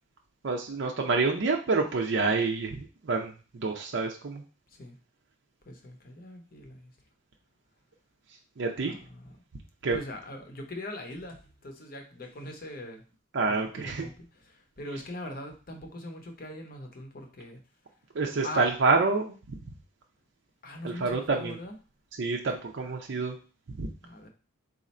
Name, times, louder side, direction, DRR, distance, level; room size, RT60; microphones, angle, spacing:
voice 1, 0.4-4.4 8.6-8.9 9.8-10.0 13.3-14.0 18.1-19.6 20.8-21.6 22.2-23.4 23.8-23.9, right 3 dB, 55° right, 1 dB, 0.5 m, -28 dB
voice 2, 5.6-6.9 8.8-9.3 9.9-13.0 13.8-17.6 18.4-18.7 20.6-21.7 24.0-24.3, left 1 dB, 40° left, 3 dB, 0.7 m, -41 dB
4.1 x 2.5 x 4.1 m, 0.36 s
head